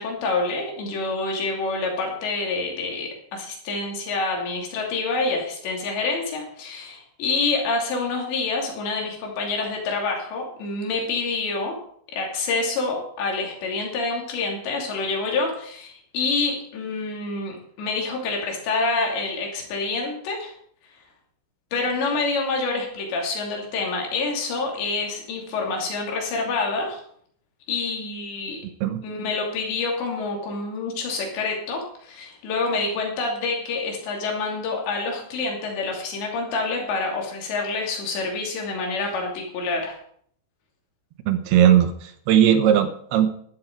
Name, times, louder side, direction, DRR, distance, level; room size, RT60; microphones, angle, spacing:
voice 1, 0.0-11.8 12.1-20.5 21.7-27.0 27.7-28.6 29.0-40.0, left 3 dB, 85° left, 0 dB, 5.0 m, -27 dB
voice 2, 41.3-43.3, right 10 dB, 75° right, 10 dB, 2.7 m, -18 dB
13.5 x 12.0 x 4.6 m, 0.63 s
omnidirectional pair, 4.9 m